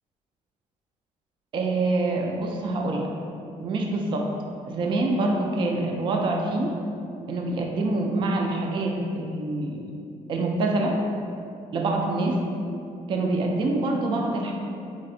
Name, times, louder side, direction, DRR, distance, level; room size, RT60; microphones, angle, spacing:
voice 1, 1.5-3.1 3.6-4.3 4.7-6.7 7.3-9.8 10.3-11.0 11.7-12.4 13.1-14.5, right 2 dB, 40° right, 1 dB, 0.4 m, -25 dB
4.1 x 2.5 x 3.7 m, 2.6 s
cardioid pair, 155°, 13 cm